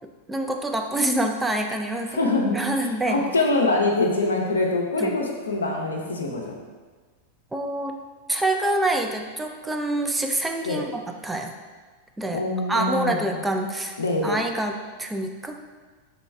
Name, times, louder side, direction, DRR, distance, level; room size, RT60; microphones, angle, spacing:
voice 1, 0.3-3.2 5.0-5.2 7.5-7.9 8.3-11.5 12.2-14.0 14.2-15.6, right 1 dB, 10° right, 3 dB, 0.3 m, -26 dB
voice 2, 2.1-2.6 3.1-6.6 10.7-10.8 12.3-13.3 14.0-14.4, left 2 dB, 70° left, 1 dB, 0.5 m, -24 dB
3.5 x 3.0 x 3.3 m, 1.4 s
figure-of-eight pair, 90°, 0 cm